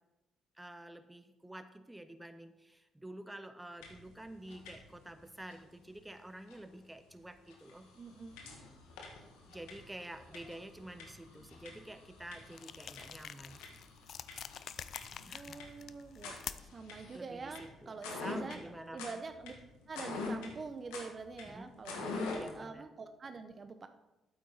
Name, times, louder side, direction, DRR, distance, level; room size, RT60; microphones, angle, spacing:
voice 1, 0.6-7.9 9.5-13.6 15.3-15.6 17.1-19.2 21.5-21.7 22.0-22.9, right 1 dB, 10° right, 9 dB, 0.8 m, -49 dB
sound 1, 3.8-4.1 4.4-5.1 5.5-5.6 6.5-6.6 7.1-7.2 7.5-22.6, left 3 dB, 85° left, 1.5 m, -46 dB
voice 2, 8.0-8.6 15.3-18.6 18.9-19.5 19.9-22.2 22.5-23.9, right 4 dB, 45° right, 8 dB, 0.7 m, -45 dB
sound 2, 12.5-16.8, left 8 dB, 60° left, 0.4 m, -47 dB
8.7 x 8.4 x 4.0 m, 0.98 s
supercardioid pair, 55°, 0 cm